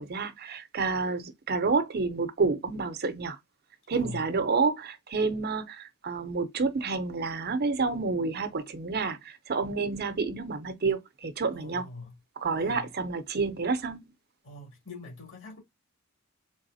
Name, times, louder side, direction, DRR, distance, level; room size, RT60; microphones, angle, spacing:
voice 1, 0.0-3.4 3.9-11.9 12.4-14.0, right 4 dB, 50° right, 0.6 m, -29 dB
voice 2, 3.9-4.2 11.5-12.1 12.6-12.8 14.4-15.6, left 2 dB, 65° left, 2.7 m, -43 dB
3.9 x 3.4 x 2.7 m
head